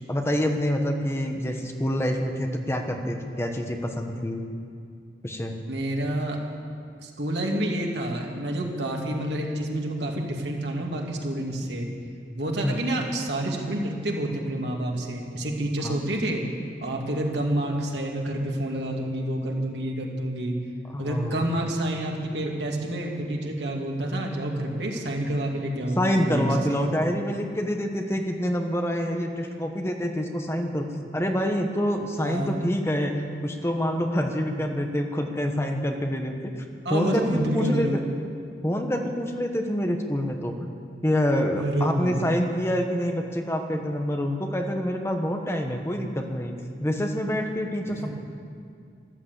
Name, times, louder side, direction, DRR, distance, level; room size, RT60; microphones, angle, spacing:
voice 1, 0.1-4.4 5.2-5.6 12.6-12.8 15.8-15.9 20.9-21.4 26.0-30.8 31.1-36.5 36.9-37.9 38.6-40.6 41.0-46.5 46.8-48.2, equal, 15° left, 4 dB, 1.1 m, -26 dB
voice 2, 5.7-6.4 7.0-11.9 12.3-16.4 16.8-20.5 21.0-26.8 32.2-32.7 36.8-38.1 41.6-42.3 48.0-48.1, right 1 dB, 85° right, 0 dB, 2.4 m, -28 dB
14.0 x 13.0 x 8.2 m, 2.4 s
head